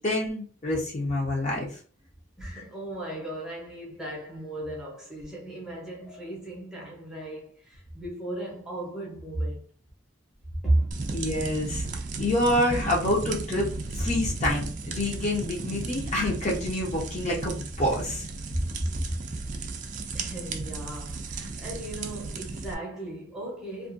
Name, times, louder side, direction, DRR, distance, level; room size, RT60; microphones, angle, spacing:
voice 1, 0.0-1.8 11.1-11.8 12.2-13.7 13.9-18.2, left 1 dB, 35° left, 0.8 m, -27 dB
voice 2, 2.4-9.6 10.6-11.0 20.1-23.9, right 1 dB, 5° right, 0.7 m, -34 dB
sound 1, 10.9-22.7, right 3 dB, 40° right, 0.4 m, -35 dB
2.5 x 2.3 x 2.5 m
head